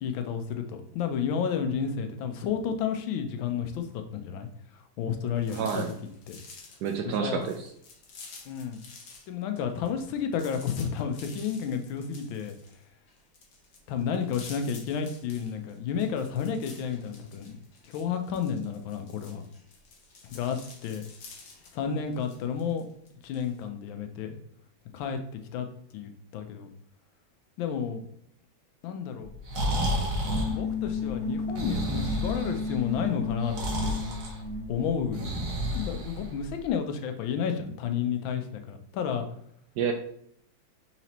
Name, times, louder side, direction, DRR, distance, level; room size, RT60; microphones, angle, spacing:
voice 1, 0.0-4.5 5.0-5.8 6.3-6.4 7.2-7.5 8.5-8.8 9.3-12.5 13.9-19.4 20.2-20.6 20.8-21.0 21.7-22.8 23.2-24.4 24.9-25.2 25.5-25.7 25.9-26.7 27.6-28.0 28.8-29.3 30.5-33.6 33.8-33.9 34.7-39.2, left 7 dB, 85° left, 6 dB, 1.4 m, -31 dB
sound 1, 5.4-9.3 9.6-23.6, left 4 dB, 60° left, 1.4 m, -50 dB
voice 2, 5.5-5.9 6.8-7.7 39.8-39.9, right 7 dB, 75° right, 4 dB, 1.0 m, -29 dB
Breathing, 29.2-36.7, equal, 50° right, 1.2 m, -31 dB
sound 2, 30.1-34.9, left 4 dB, 25° left, 2.0 m, -33 dB
4.4 x 4.0 x 2.9 m, 0.68 s
omnidirectional pair, 2.1 m